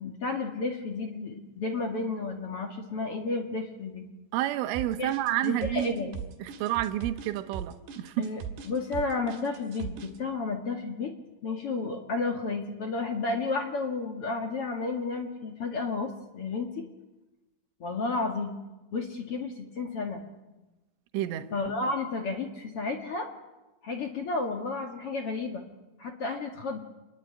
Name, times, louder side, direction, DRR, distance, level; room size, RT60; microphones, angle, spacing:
voice 1, 0.0-4.1 5.0-5.1 5.4-6.2 8.2-8.4 8.7-11.1 11.4-16.8 17.8-18.5 18.9-20.2 21.5-23.3 23.8-25.6 26.0-26.8, left 3 dB, 45° left, 1.9 m, -32 dB
voice 2, 4.3-6.0 6.4-8.3 21.1-21.5, right 14 dB, 80° right, 3.6 m, -29 dB
sound 1, 4.7-10.2, right 7 dB, 60° right, 4.0 m, -39 dB
27.5 x 21.0 x 9.8 m
omnidirectional pair, 5.7 m